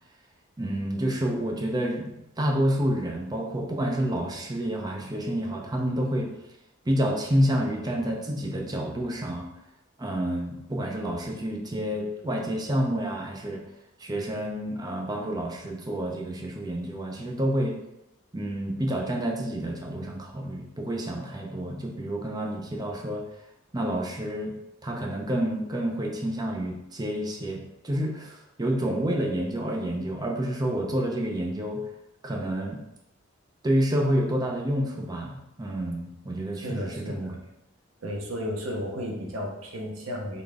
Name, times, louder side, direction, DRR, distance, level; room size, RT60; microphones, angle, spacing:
voice 1, 0.6-2.1 2.4-6.3 6.8-9.5 10.0-13.6 14.0-17.8 18.3-23.2 23.7-24.6 24.8-31.8 32.2-32.8 33.6-37.3, equal, 20° right, 0 dB, 0.6 m, -29 dB
voice 2, 36.6-37.4 38.0-40.4, equal, 70° right, 0 dB, 0.8 m, -33 dB
3.9 x 3.8 x 3.5 m, 0.87 s
head